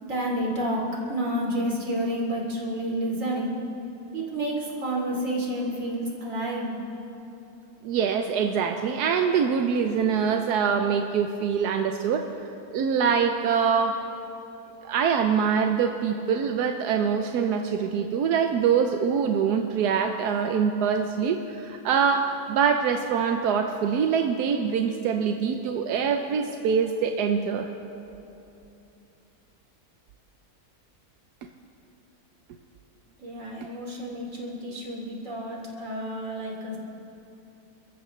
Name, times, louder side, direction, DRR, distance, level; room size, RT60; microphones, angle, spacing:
voice 1, 0.0-0.8 1.1-3.5 4.1-6.8 33.2-36.8, right 1 dB, 55° right, -2 dB, 3.2 m, -30 dB
voice 2, 7.8-12.3 12.7-14.0 14.8-27.7, right 6 dB, 90° right, 5 dB, 1.3 m, -24 dB
29.5 x 14.0 x 3.2 m, 2.8 s
omnidirectional pair, 1.7 m